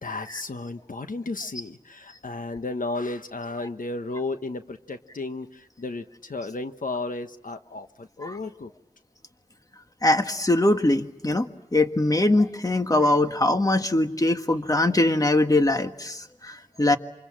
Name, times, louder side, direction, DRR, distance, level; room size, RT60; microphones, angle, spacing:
voice 1, 0.0-8.7 13.0-13.1, left 3 dB, 75° left, 8 dB, 1.3 m, -33 dB
voice 2, 10.0-17.0, left 2 dB, 25° left, 7 dB, 1.6 m, -22 dB
28.5 x 27.0 x 7.5 m, 0.93 s
wide cardioid pair, 65°, 14 cm